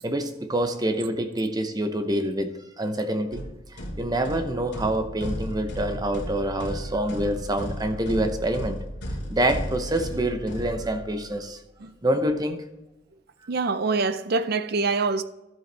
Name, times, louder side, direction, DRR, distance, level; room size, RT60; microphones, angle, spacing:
voice 1, 0.0-3.4 3.7-8.8 9.3-11.6 12.0-12.6, right 1 dB, 20° right, 0.8 m, -26 dB
sound 1, 3.3-11.3, equal, 60° left, 2.5 m, -34 dB
voice 2, 13.5-15.2, right 4 dB, 55° right, 0.6 m, -25 dB
12.0 x 7.9 x 3.4 m
head